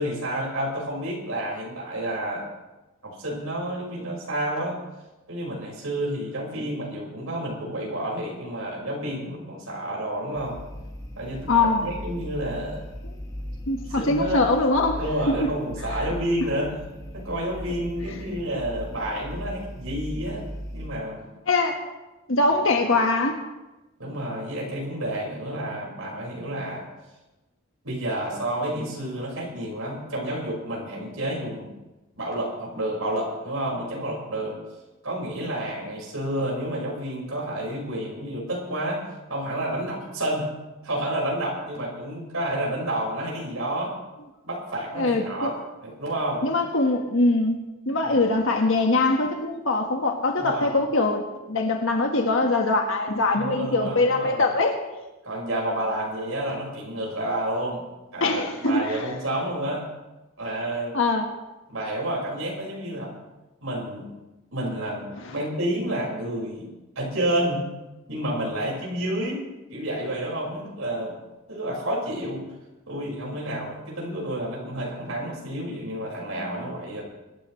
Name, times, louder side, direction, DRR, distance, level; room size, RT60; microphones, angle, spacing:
voice 1, 0.0-2.5 3.0-4.8 5.3-10.6 11.2-12.9 13.9-14.5 15.0-16.7 17.1-21.2 24.0-26.9 27.8-31.7 32.2-34.6 35.0-40.5 40.8-43.9 44.4-46.4 48.2-48.3 50.4-50.8 53.3-54.5 55.2-57.9 58.1-59.9 60.4-60.9 61.7-63.2 63.6-64.1 64.5-67.7 68.1-71.2 71.5-72.4 72.9-77.0, right 1 dB, 85° right, -2 dB, 5.4 m, -30 dB
sound 1, 10.3-20.9, equal, 15° left, 1.6 m, -38 dB
voice 2, 11.5-11.9 13.0-13.1 13.7-15.0 21.5-21.8 22.3-23.4 45.0-45.5 46.4-47.6 47.9-51.2 51.5-54.8 58.2-59.0 60.9-61.3, left 2 dB, 70° left, 3 dB, 1.5 m, -22 dB
24.5 x 12.5 x 3.2 m, 1.1 s
head